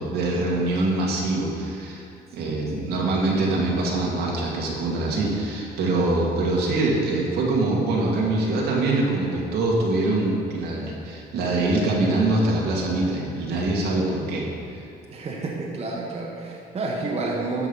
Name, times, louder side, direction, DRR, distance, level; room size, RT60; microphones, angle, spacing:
voice 1, 0.0-2.0 2.3-14.8, right 2 dB, 75° right, -3 dB, 2.1 m, -24 dB
voice 2, 15.1-17.7, right 3 dB, 40° right, -3 dB, 1.4 m, -30 dB
13.0 x 5.4 x 5.4 m, 2.5 s
cardioid pair, 110°, 17 cm